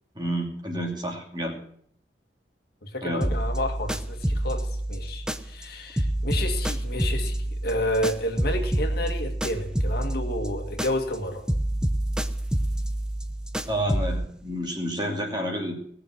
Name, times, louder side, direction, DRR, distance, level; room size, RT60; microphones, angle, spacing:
voice 1, 0.1-1.6 3.0-3.3 13.7-15.7, equal, 25° right, 1 dB, 2.7 m, -29 dB
voice 2, 2.8-11.4, left 1 dB, 60° left, 3 dB, 1.9 m, -30 dB
sound 1, 3.2-5.7 6.0-11.2 11.5-14.3, right 1 dB, 5° right, 0.7 m, -28 dB
18.5 x 6.7 x 8.0 m, 0.65 s
head